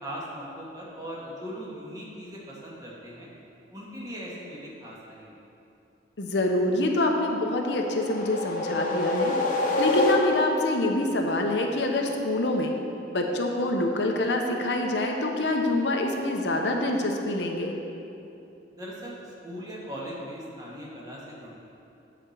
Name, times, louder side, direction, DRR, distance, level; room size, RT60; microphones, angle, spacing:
voice 1, 0.0-3.3 3.7-5.4 18.7-21.6, equal, 20° right, -5 dB, 1.6 m, -39 dB
voice 2, 6.2-9.4 9.8-12.7 13.1-17.8, left 1 dB, 75° left, 2 dB, 0.8 m, -26 dB
sound 1, 7.6-10.7, left 2 dB, 45° left, 1.0 m, -26 dB
9.1 x 4.3 x 6.5 m, 2.8 s
head